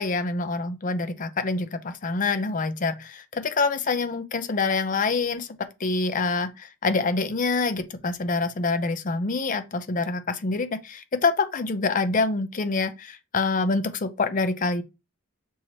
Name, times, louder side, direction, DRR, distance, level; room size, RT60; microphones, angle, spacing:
voice 1, 0.0-5.5 5.8-14.8, left 3 dB, 40° left, 0.5 m, -26 dB
6.3 x 2.9 x 2.9 m
head